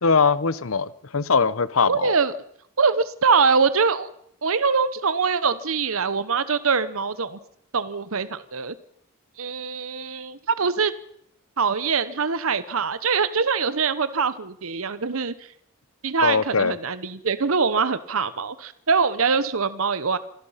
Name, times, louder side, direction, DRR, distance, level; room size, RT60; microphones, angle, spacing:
voice 1, 0.0-2.2 16.2-16.7, left 5 dB, 70° left, 17 dB, 0.9 m, -21 dB
voice 2, 1.9-2.3 2.8-4.1 4.4-7.4 7.7-8.7 9.4-10.9 11.6-15.3 16.0-20.2, right 5 dB, 70° right, 14 dB, 0.9 m, -23 dB
26.5 x 17.5 x 5.7 m, 0.71 s
head